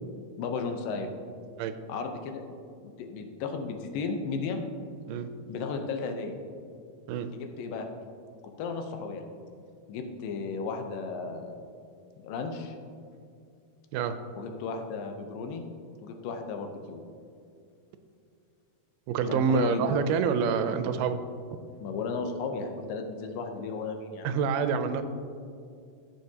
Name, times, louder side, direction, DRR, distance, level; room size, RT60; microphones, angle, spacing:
voice 1, 0.4-1.1 1.9-2.4 2.8-4.6 5.5-6.4 7.3-7.9 8.6-9.2 9.9-11.5 12.2-12.8 14.4-15.6 16.0-17.0 19.3-20.0 21.8-24.3, left 4 dB, 90° left, 5 dB, 2.5 m, -34 dB
voice 2, 19.1-21.2 24.2-25.0, right 6 dB, 85° right, 9 dB, 2.1 m, -27 dB
15.0 x 6.2 x 2.8 m, 2.4 s
omnidirectional pair, 3.8 m